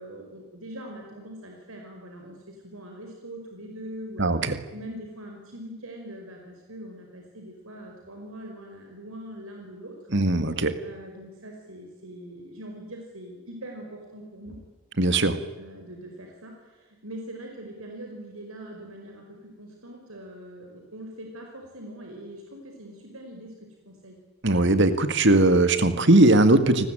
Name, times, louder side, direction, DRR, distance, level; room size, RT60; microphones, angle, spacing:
voice 1, 0.0-9.9 10.8-14.6 15.6-24.2, right 1 dB, 85° right, 1 dB, 5.3 m, -42 dB
voice 2, 4.2-4.6 10.1-10.8 15.0-15.4 24.4-26.9, right 2 dB, 55° right, 11 dB, 2.0 m, -19 dB
28.5 x 20.0 x 9.1 m, 1.3 s
head